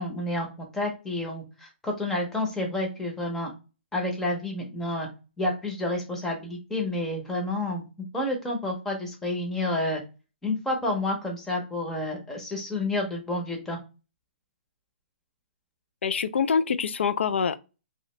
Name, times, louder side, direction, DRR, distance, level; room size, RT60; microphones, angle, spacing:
voice 1, 0.0-3.5 3.9-5.1 5.4-7.9 8.1-10.0 10.4-13.8, left 1 dB, 5° left, 0.6 m, -29 dB
voice 2, 16.0-17.6, left 6 dB, 80° left, 0.4 m, -25 dB
2.9 x 2.5 x 3.1 m
hypercardioid pair, 165°, 6 cm